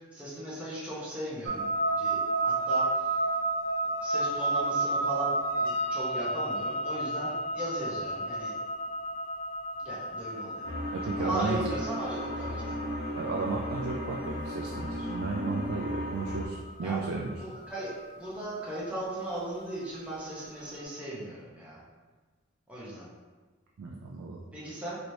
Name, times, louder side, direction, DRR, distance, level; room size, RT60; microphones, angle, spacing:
voice 1, 0.1-1.7 2.0-2.9 4.0-8.5 9.8-10.7 11.2-12.8 16.8-17.0 17.4-17.9 18.2-21.8 22.7-23.1 24.5-25.0, right 1 dB, 5° right, -8 dB, 0.8 m, -37 dB
sound 1, 1.5-20.5, right 2 dB, 70° right, 1.1 m, -32 dB
sound 2, 10.6-16.5, equal, 70° left, 0.7 m, -35 dB
voice 2, 10.9-11.6 13.2-17.3 23.8-24.4, right 4 dB, 90° right, -2 dB, 0.4 m, -34 dB
3.1 x 3.0 x 2.7 m, 1.3 s
head